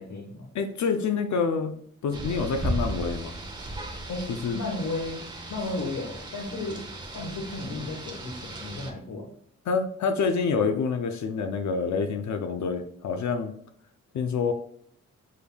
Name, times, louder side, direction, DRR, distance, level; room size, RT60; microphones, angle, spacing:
voice 1, 0.0-0.5 4.1-4.3 4.5-5.2 5.5-6.8 7.1-9.3, left 2 dB, 90° left, -2 dB, 1.1 m, -34 dB
voice 2, 0.5-3.4 4.3-4.6 9.7-13.5 14.1-14.5, left 5 dB, 70° left, 7 dB, 0.5 m, -27 dB
Rain, 2.1-8.9, right 1 dB, 15° right, 0.8 m, -36 dB
6.4 x 3.5 x 2.2 m, 0.64 s
wide cardioid pair, 110°, 29 cm